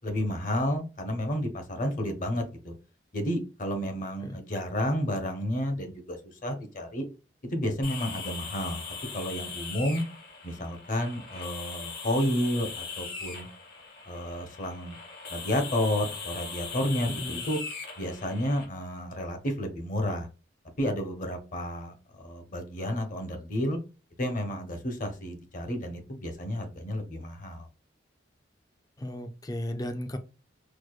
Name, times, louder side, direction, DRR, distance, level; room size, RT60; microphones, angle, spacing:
voice 1, 0.0-2.7 3.1-7.0 7.5-8.8 9.1-10.0 10.4-13.5 14.1-15.0 15.3-17.6 18.0-20.3 20.8-23.8 24.2-27.7, equal, 45° left, 0.7 m, -31 dB
sound 1, 7.8-18.6, left 5 dB, 65° left, 1.3 m, -40 dB
voice 2, 17.1-17.4 29.0-30.2, left 1 dB, 20° left, 0.4 m, -35 dB
4.7 x 2.1 x 2.3 m
head